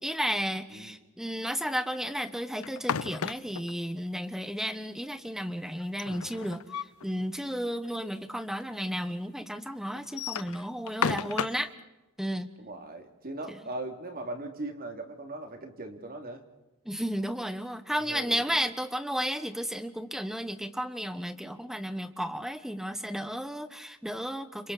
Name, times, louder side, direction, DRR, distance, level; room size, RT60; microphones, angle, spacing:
voice 1, 0.0-11.7 12.2-12.5 13.5-13.6 16.8-24.7, equal, ahead, 10 dB, 1.2 m, -33 dB
sound 1, 2.6-3.7 5.8-7.1 7.5-7.6 7.8-7.9 8.7-8.8 10.0-11.7, left 7 dB, 70° left, 0.7 m, -33 dB
voice 2, 12.6-16.5 18.0-18.4, right 2 dB, 40° right, 5 dB, 2.8 m, -39 dB
29.5 x 27.0 x 4.3 m, 1.0 s
head